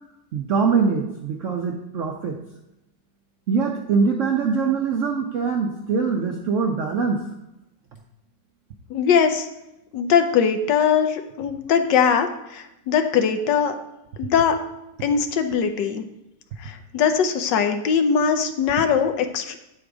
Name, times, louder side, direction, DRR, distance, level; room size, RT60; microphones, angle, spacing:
voice 1, 0.3-2.4 3.5-7.2, right 5 dB, 70° right, 2 dB, 0.7 m, -23 dB
voice 2, 8.9-9.5 9.9-13.7 14.2-14.6 15.0-16.0 16.6-19.6, left 7 dB, 80° left, 7 dB, 1.3 m, -21 dB
9.1 x 4.3 x 4.8 m, 0.90 s
omnidirectional pair, 2.0 m